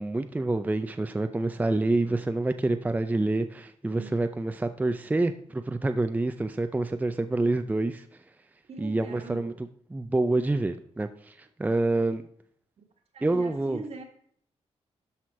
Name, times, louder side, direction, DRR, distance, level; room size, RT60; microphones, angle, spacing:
voice 1, 0.0-8.0 8.8-12.2 13.2-13.8, right 2 dB, 15° right, 0.5 m, -27 dB
voice 2, 3.9-4.3 8.7-9.6 12.8-12.9 13.1-14.0, right 4 dB, 65° right, 1.7 m, -42 dB
12.5 x 4.3 x 4.7 m
cardioid pair, 90°, 11 cm